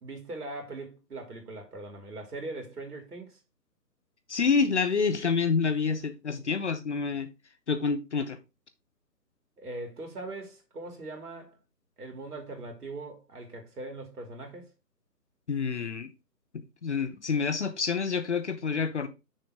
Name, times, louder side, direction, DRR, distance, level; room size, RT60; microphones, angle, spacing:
voice 1, 0.0-3.4 9.6-11.6 12.0-14.7, right 2 dB, 65° right, 2.9 m, -40 dB
voice 2, 4.3-7.3 7.7-8.4 15.5-16.1 16.5-19.1, left 5 dB, 45° left, 0.8 m, -28 dB
6.5 x 4.0 x 4.8 m
figure-of-eight pair, 155°, 49 cm